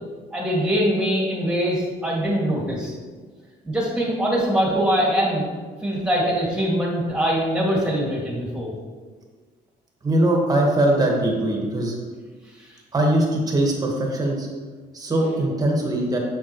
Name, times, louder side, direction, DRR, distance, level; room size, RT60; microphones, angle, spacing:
voice 1, 0.3-2.9 3.6-5.5 5.8-8.7 12.6-12.7, equal, 5° right, -4 dB, 2.1 m, -23 dB
voice 2, 10.0-11.9 12.9-14.5 14.9-16.2, right 1 dB, 20° right, 0 dB, 1.6 m, -21 dB
7.4 x 5.6 x 3.1 m, 1.4 s
cardioid pair, 110°, 17 cm